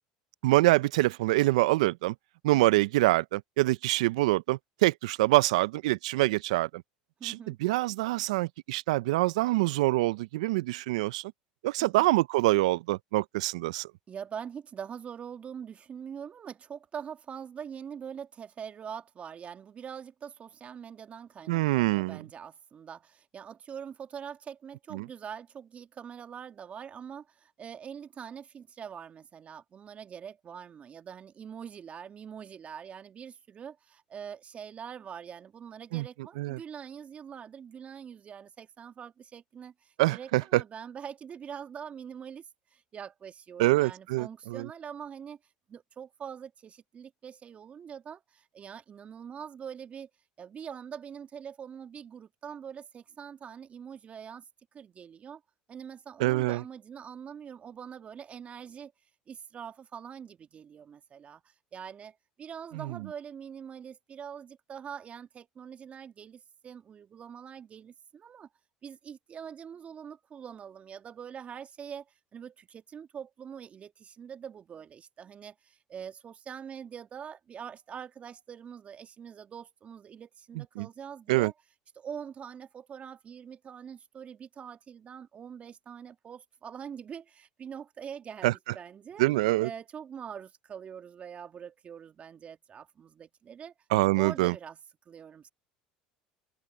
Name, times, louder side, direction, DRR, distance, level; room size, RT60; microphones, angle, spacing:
voice 1, 0.4-2.1 2.4-6.8 7.2-11.3 11.6-13.9 21.5-22.2 24.9-25.0 35.9-36.0 36.4-36.6 40.0-40.6 43.6-44.7 56.2-56.6 62.7-63.0 80.8-80.9 81.3-81.5 88.4-88.5 89.2-89.7 93.9-94.5, right 19 dB, 80° right, 0.6 m, -25 dB
voice 2, 7.2-7.6 11.8-12.1 14.1-45.4 45.7-50.1 50.4-54.4 54.7-55.4 55.7-58.9 59.3-68.5 68.8-72.1 72.3-81.5 82.0-89.3 89.6-93.7 94.2-94.8 95.1-95.5, right 7 dB, 40° right, 2.2 m, -44 dB
hypercardioid pair, 80°, 4 cm